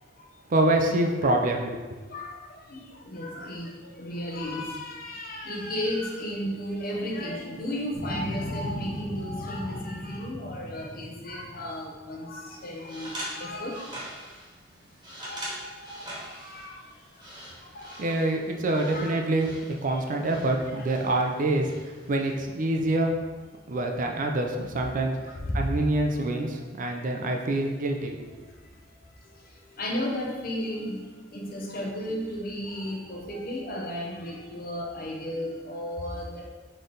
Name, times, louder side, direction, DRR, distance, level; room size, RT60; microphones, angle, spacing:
voice 1, 0.5-1.8 18.0-19.5 19.8-23.2 23.7-28.2, right 2 dB, 45° right, 3 dB, 0.5 m, -26 dB
voice 2, 2.1-13.9 15.2-16.8 17.7-18.1 18.7-19.2 19.9-20.0 20.7-20.8 23.7-23.8 24.8-25.9 27.0-27.1 29.8-36.5, left 1 dB, 50° left, -1 dB, 0.8 m, -34 dB
sound 1, 7.9-12.2, left 1 dB, ahead, 1.3 m, -37 dB
sound 2, 12.4-22.3, right 1 dB, 25° right, 1.3 m, -43 dB
4.1 x 3.3 x 3.8 m, 1.3 s
head